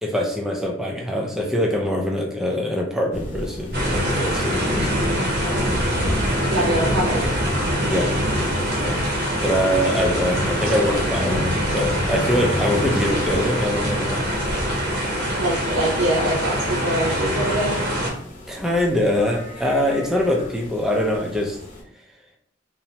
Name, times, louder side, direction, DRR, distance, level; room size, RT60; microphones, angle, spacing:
voice 1, 0.0-5.0 7.9-8.1 8.8-9.0 9.4-14.2 18.5-21.6, left 1 dB, ahead, 0 dB, 0.3 m, -23 dB
sound 1, 3.1-21.8, equal, 40° left, 0.8 m, -36 dB
sound 2, 3.7-18.1, equal, 55° right, 0.7 m, -23 dB
voice 2, 6.5-7.2 15.4-17.7, right 1 dB, 90° right, -8 dB, 0.8 m, -23 dB
2.9 x 2.1 x 2.7 m, 0.67 s
head